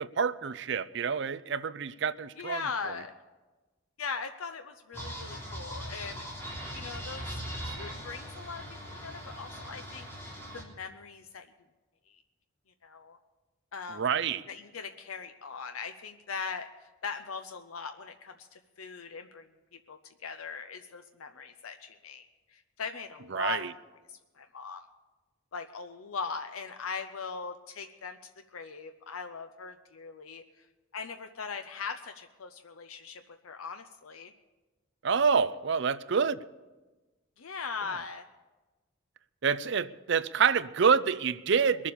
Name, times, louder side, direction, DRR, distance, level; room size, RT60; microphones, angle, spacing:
voice 1, 0.0-2.6 13.9-14.4 23.3-23.7 35.0-36.4 39.4-41.9, right 6 dB, 55° right, 15 dB, 0.5 m, -27 dB
voice 2, 2.4-3.1 4.0-6.3 6.7-7.4 7.8-8.6 8.9-11.5 12.1-12.2 12.8-13.2 13.7-14.0 14.5-22.2 22.5-23.8 24.1-24.9 25.5-30.7 30.9-34.3 37.4-38.3, left 5 dB, 90° left, 7 dB, 0.7 m, -40 dB
sound 1, 4.9-10.6, equal, 10° left, 3.4 m, -40 dB
22.0 x 7.4 x 6.9 m, 1.2 s
head